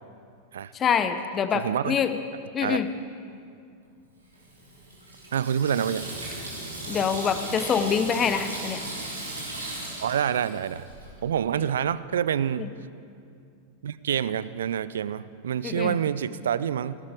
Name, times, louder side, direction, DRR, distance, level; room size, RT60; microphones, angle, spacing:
voice 1, 0.7-2.1 2.5-2.9 6.9-8.8 12.6-12.7 15.6-16.0, left 7 dB, 25° left, 10 dB, 0.8 m, -25 dB
voice 2, 1.5-2.0 2.6-2.8 5.3-6.1 10.0-10.8 11.2-12.7 13.8-17.0, right 8 dB, 65° right, 16 dB, 0.4 m, -27 dB
Water tap faucet / Sink (filling or washing), 4.3-11.1, right 1 dB, 80° right, 3.5 m, -37 dB
17.0 x 13.0 x 4.9 m, 2.4 s
figure-of-eight pair, 90°, 0 cm